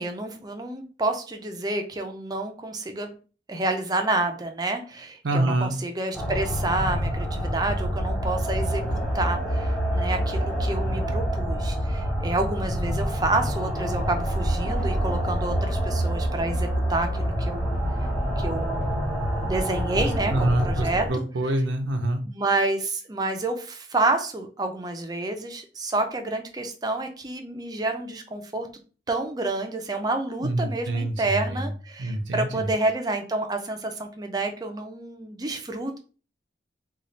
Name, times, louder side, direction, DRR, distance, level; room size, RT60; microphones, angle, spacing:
voice 1, 0.0-3.2 3.5-17.7 18.4-18.9 19.4-21.2 22.3-28.7 29.1-36.0, right 2 dB, 20° right, 5 dB, 0.5 m, -29 dB
voice 2, 5.2-5.7 20.0-22.2 30.4-31.7 32.0-32.7, right 1 dB, 85° right, 4 dB, 0.6 m, -26 dB
sound 1, 6.1-21.1, equal, 5° left, 1.0 m, -27 dB
3.2 x 2.4 x 3.9 m, 0.37 s
head